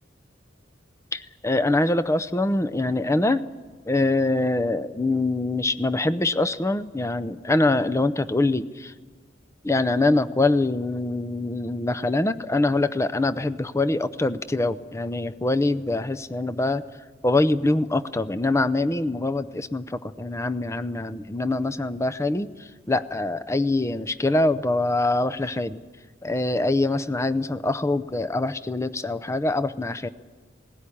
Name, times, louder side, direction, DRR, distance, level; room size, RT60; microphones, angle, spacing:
voice 1, 1.1-3.4 3.9-8.9 9.6-16.8 17.2-22.5 22.9-25.8 26.2-30.1, left 2 dB, 15° left, 12 dB, 0.6 m, -24 dB
19.0 x 16.0 x 9.9 m, 1.4 s
head